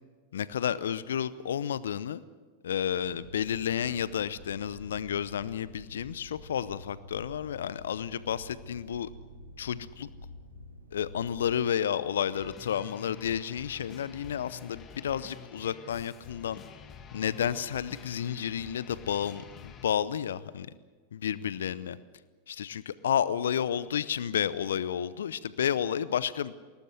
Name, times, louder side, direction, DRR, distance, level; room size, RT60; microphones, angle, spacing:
voice 1, 0.3-2.2 2.6-9.1 9.6-10.1 10.9-16.6 17.1-20.7 21.1-22.0 22.5-26.5, left 9 dB, 70° left, 17 dB, 0.7 m, -31 dB
sound 1, 2.9-11.5, left 1 dB, 85° right, 3.4 m, -49 dB
sound 2, 12.3-19.9, left 8 dB, 30° left, 2.2 m, -48 dB
21.5 x 18.5 x 7.9 m, 1.4 s
figure-of-eight pair, 90°, 0 cm